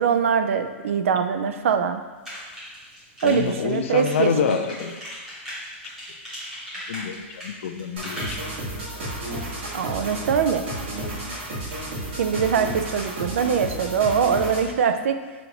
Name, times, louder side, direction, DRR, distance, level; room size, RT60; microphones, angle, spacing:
voice 1, 0.0-2.0 3.2-4.6 9.7-10.6 12.2-15.2, right 7 dB, 85° right, 8 dB, 0.4 m, -23 dB
sound 1, 2.2-8.3, equal, 5° right, 1.3 m, -37 dB
voice 2, 3.2-5.0 6.9-8.4, left 7 dB, 80° left, 7 dB, 0.4 m, -26 dB
sound 2, 8.0-14.7, right 1 dB, 60° right, 1.5 m, -32 dB
6.7 x 2.5 x 2.9 m, 1.3 s
supercardioid pair, 170°, 7 cm